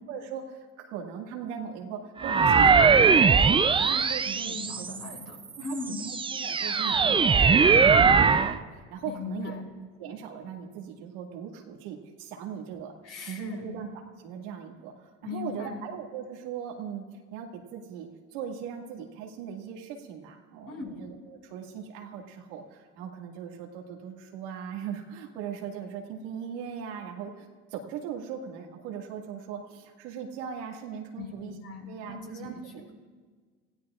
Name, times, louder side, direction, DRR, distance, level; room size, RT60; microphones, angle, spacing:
voice 1, 0.1-5.2 5.6-9.6 10.0-12.9 13.2-13.9 14.2-17.0 17.3-31.5 31.8-32.9, right 7 dB, 90° right, 1 dB, 2.1 m, -39 dB
Futuristic Beam, 2.2-5.1 5.7-8.6, right 5 dB, 15° right, 0.5 m, -21 dB
voice 2, 4.4-6.1 9.0-9.7 13.0-13.7 15.2-15.8 20.7-21.0 31.2-32.5, left 4 dB, 50° left, -1 dB, 5.8 m, -39 dB
27.5 x 16.0 x 2.5 m, 1.5 s
supercardioid pair, 105°, 33 cm